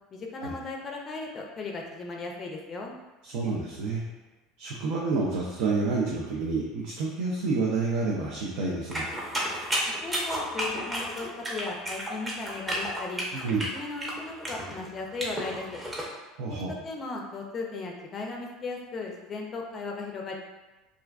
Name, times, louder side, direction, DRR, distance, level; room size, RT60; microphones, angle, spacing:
voice 1, 0.1-2.9 10.0-13.2 13.7-15.6 16.5-20.3, left 3 dB, 35° left, 1 dB, 0.4 m, -36 dB
voice 2, 3.2-4.0 4.6-9.1 13.3-13.6 16.4-16.7, right 3 dB, 75° right, -3 dB, 0.4 m, -29 dB
sound 1, 8.9-16.1, equal, 15° right, 0.6 m, -32 dB
2.3 x 2.3 x 2.3 m, 1.1 s
supercardioid pair, 110°, 0 cm